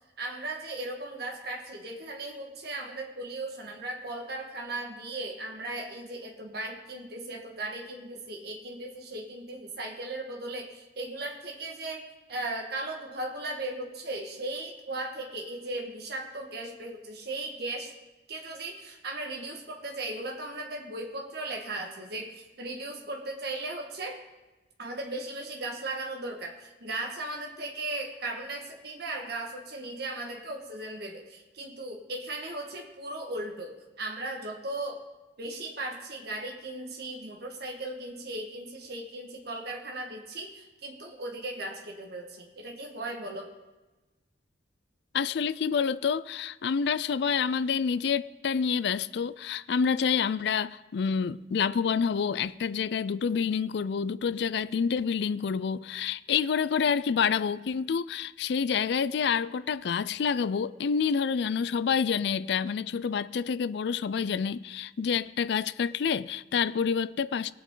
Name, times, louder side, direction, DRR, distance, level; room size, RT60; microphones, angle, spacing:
voice 1, 0.2-17.9 18.3-24.2 24.8-35.0 35.4-43.5, right 2 dB, 65° right, 1.6 m, -37 dB
voice 2, 45.1-67.5, left 6 dB, 65° left, 0.4 m, -28 dB
19.5 x 8.4 x 3.8 m
head